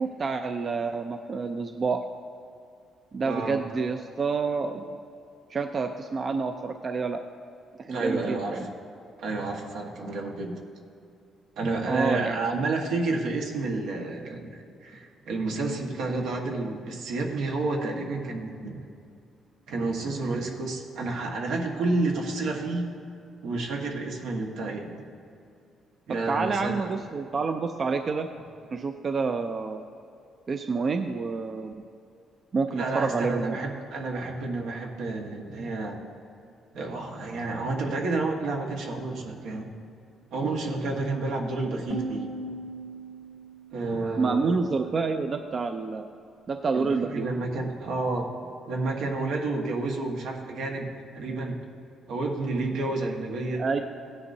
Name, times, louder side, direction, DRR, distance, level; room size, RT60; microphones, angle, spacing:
voice 1, 0.0-2.0 3.1-4.8 5.5-7.2 7.8-8.7 11.9-12.6 26.3-28.3 28.7-29.8 30.5-31.7 32.5-33.6 44.2-46.0 46.5-47.3 53.6-53.8, right 4 dB, 35° right, 7 dB, 0.4 m, -28 dB
voice 2, 3.2-3.6 7.9-8.7 9.2-10.5 11.6-18.8 19.7-22.9 23.4-24.9 26.1-26.9 32.7-36.0 36.7-39.7 40.3-42.3 43.7-44.6 46.7-48.3 48.7-51.6 52.1-53.6, right 3 dB, 80° right, 0 dB, 1.4 m, -30 dB
sound 1, 41.9-44.9, right 2 dB, 55° right, 2.0 m, -38 dB
16.0 x 9.8 x 2.7 m, 2.5 s
cardioid pair, 120°, 0 cm